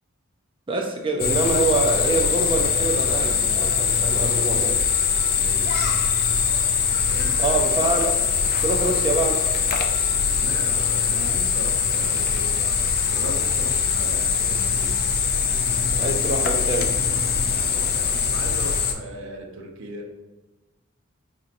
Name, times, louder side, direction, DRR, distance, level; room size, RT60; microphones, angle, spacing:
voice 1, 0.7-4.8 7.4-8.2 8.6-9.5 16.0-16.9, right 3 dB, 25° right, 2 dB, 0.4 m, -25 dB
sound 1, 1.2-18.9, left 6 dB, 50° left, 0.4 m, -22 dB
voice 2, 5.4-5.7 7.0-7.6 10.3-12.5 13.1-15.0 17.5-20.1, right 1 dB, 65° right, 0 dB, 0.7 m, -37 dB
5.1 x 2.7 x 2.5 m, 1.2 s
head